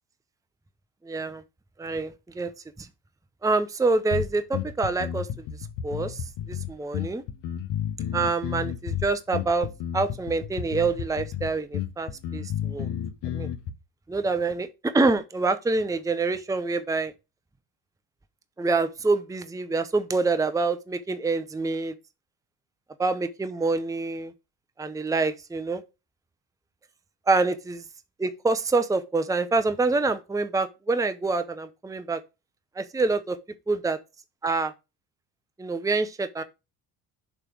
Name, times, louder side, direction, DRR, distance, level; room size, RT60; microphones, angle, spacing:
voice 1, 1.0-1.4 1.8-2.5 2.8-2.9 3.4-5.3 5.8-6.2 6.5-7.2 8.1-9.7 9.9-12.9 13.3-13.5 14.1-17.1 18.6-21.9 23.0-24.3 24.8-25.8 27.3-27.8 28.2-32.2 32.8-33.4 33.7-34.0 34.4-34.7 35.6-36.4, right 3 dB, 10° right, 0.8 m, -26 dB
sound 1, 4.1-13.7, left 9 dB, 65° left, 1.1 m, -32 dB
7.3 x 3.3 x 6.1 m
hypercardioid pair, 65°, 44 cm